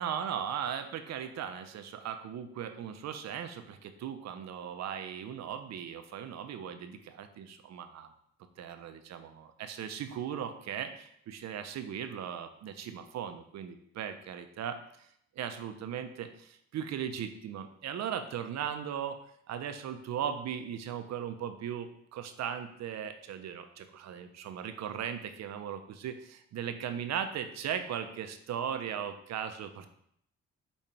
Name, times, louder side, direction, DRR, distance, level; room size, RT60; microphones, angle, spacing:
voice 1, 0.0-8.1 8.6-15.1 15.4-19.2 19.5-29.9, right 8 dB, 60° right, 8 dB, 0.6 m, -38 dB
5.3 x 2.4 x 4.2 m, 0.69 s
cardioid pair, 90°, 30 cm